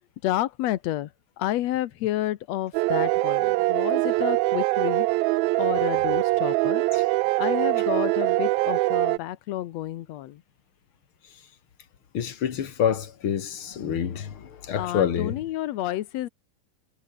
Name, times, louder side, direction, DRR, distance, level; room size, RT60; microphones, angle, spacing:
voice 1, 0.2-1.1 1.4-5.1 5.6-6.8 7.4-10.4 14.7-16.3, left 14 dB, 80° left, 1.5 m, -30 dB
sound 1, 2.7-9.2, right 21 dB, 85° right, 2.4 m, -23 dB
voice 2, 12.1-15.3, left 8 dB, 45° left, 2.2 m, -27 dB
omnidirectional pair, 4.3 m